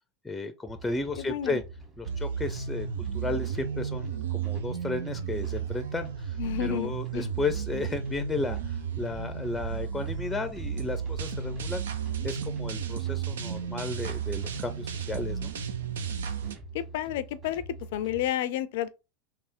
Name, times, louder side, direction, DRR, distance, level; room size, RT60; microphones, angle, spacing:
voice 1, 0.2-1.6 2.0-11.8 12.2-15.5, left 3 dB, 10° left, 0.5 m, -34 dB
sound 1, 0.7-18.3, right 2 dB, 30° right, 1.8 m, -47 dB
voice 2, 1.2-1.6 6.4-7.3 16.7-17.6 17.9-18.9, left 12 dB, 60° left, 0.4 m, -31 dB
sound 2, 2.1-16.6, right 7 dB, 70° right, 0.5 m, -33 dB
3.4 x 2.9 x 4.3 m
figure-of-eight pair, 80°, 0 cm